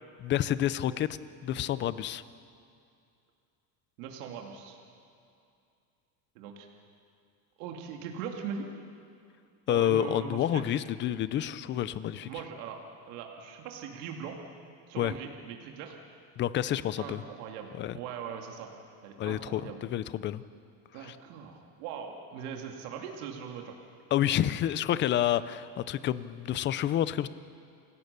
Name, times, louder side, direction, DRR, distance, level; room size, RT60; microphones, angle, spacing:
voice 1, 0.2-2.2 9.7-12.3 15.0-15.1 16.4-17.2 17.8-18.0 19.2-20.4 21.0-21.2 24.1-27.3, left 11 dB, 25° left, 16 dB, 0.5 m, -29 dB
voice 2, 4.0-4.8 6.4-6.7 7.6-8.7 9.7-10.7 12.2-12.8 13.1-14.4 14.9-16.0 16.7-18.7 19.0-19.8 20.9-23.8, right 7 dB, 85° right, 2 dB, 2.5 m, -40 dB
29.0 x 17.0 x 6.8 m, 2.5 s
cardioid pair, 160°, 44 cm